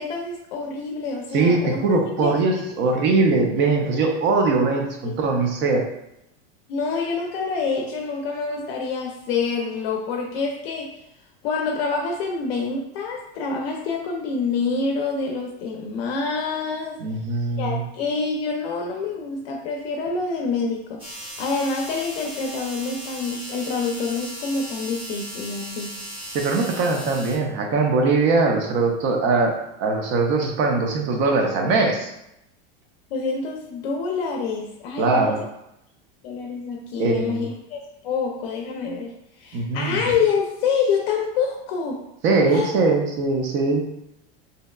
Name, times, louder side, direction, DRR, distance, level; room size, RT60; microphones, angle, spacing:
voice 1, 0.0-1.8 2.2-2.6 5.0-5.1 6.7-10.9 11.4-17.0 17.6-25.9 33.1-35.3 36.2-39.1 39.4-42.0 42.5-42.7, left 4 dB, 70° left, 0 dB, 0.5 m, -27 dB
voice 2, 1.3-5.8 17.0-17.8 26.3-32.1 35.0-35.4 37.0-37.5 39.5-40.0 42.2-43.9, right 3 dB, 40° right, 3 dB, 0.4 m, -21 dB
maszyna do golenia shaving, 21.0-27.4, equal, 15° right, 0.8 m, -37 dB
2.7 x 2.1 x 2.2 m, 0.84 s
supercardioid pair, 135°, 31 cm